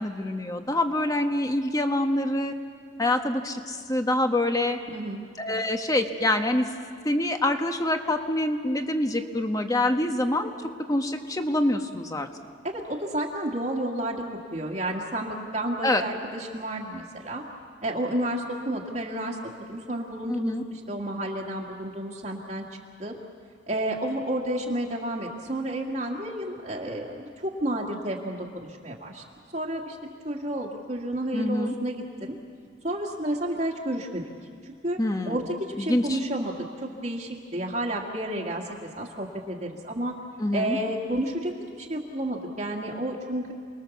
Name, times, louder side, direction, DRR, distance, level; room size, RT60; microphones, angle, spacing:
voice 1, 0.0-2.5 3.0-4.8 5.4-6.6 7.0-10.5 10.9-12.3 15.8-16.0 20.3-20.6 31.3-31.7 35.0-35.4 35.8-36.2 40.4-40.8, left 1 dB, 20° left, 6 dB, 1.2 m, -25 dB
voice 2, 4.9-5.2 12.6-14.3 14.5-17.4 17.8-22.7 23.0-23.2 23.7-29.2 29.5-30.0 30.2-32.3 32.8-34.2 34.6-35.0 35.2-40.1 40.5-43.5, right 1 dB, 40° right, -4 dB, 1.8 m, -31 dB
29.0 x 20.5 x 7.1 m, 2.2 s
head